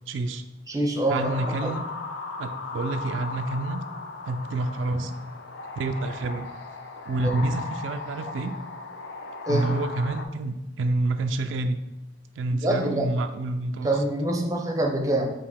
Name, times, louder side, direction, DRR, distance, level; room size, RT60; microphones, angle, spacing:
voice 1, 0.1-0.4 1.1-1.9 2.4-3.8 4.3-5.3 5.8-6.5 7.1-8.6 9.5-11.8 12.4-13.9, right 2 dB, 90° right, 8 dB, 0.3 m, -28 dB
voice 2, 0.7-1.7 7.2-7.4 9.5-9.7 12.6-13.1 13.8-15.3, right 1 dB, 20° right, 2 dB, 0.6 m, -25 dB
sound 1, 1.2-10.3, left 3 dB, 75° left, 0.5 m, -37 dB
4.9 x 2.9 x 3.5 m, 0.96 s
head